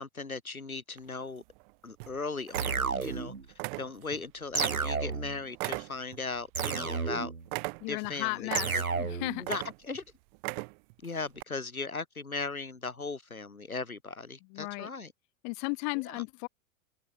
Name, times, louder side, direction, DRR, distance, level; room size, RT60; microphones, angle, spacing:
voice 1, 0.0-1.4 1.8-3.3 3.8-7.3 7.9-8.8 9.4-10.0 11.0-15.1 16.1-16.2, left 3 dB, 90° left, 1.6 m, -38 dB
sound 1, 1.0-1.6 2.0-2.2 2.5-3.2 3.5-4.2 4.6-7.1 7.5-8.1 8.5-9.0 9.4-10.0 10.3-10.9 11.4-11.5, right 30 dB, 45° right, 2.1 m, -37 dB
sound 2, 2.5-3.4 4.5-5.4 6.5-7.4 8.5-9.4, right 4 dB, 85° right, 2.0 m, -32 dB
voice 2, 7.8-9.4 14.5-14.9 15.4-16.5, left 40 dB or more, 45° left, 2.3 m, -35 dB
open air
figure-of-eight pair, 90°, 41 cm